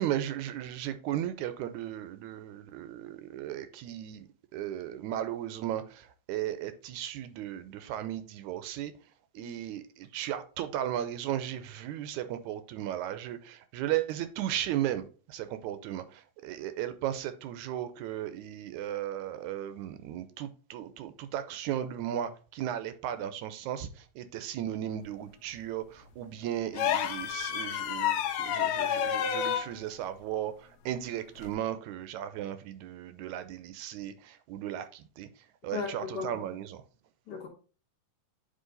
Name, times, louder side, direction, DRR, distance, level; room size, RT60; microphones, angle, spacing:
voice 1, 0.0-8.9 9.3-35.3 35.6-36.8, right 11 dB, 85° right, 2.0 m, -36 dB
sound 1, 26.7-29.7 31.4-31.5, left 9 dB, 75° left, 1.6 m, -29 dB
voice 2, 35.7-36.5 37.3-37.5, left 5 dB, 50° left, 1.3 m, -37 dB
9.4 x 3.2 x 3.9 m
omnidirectional pair, 3.4 m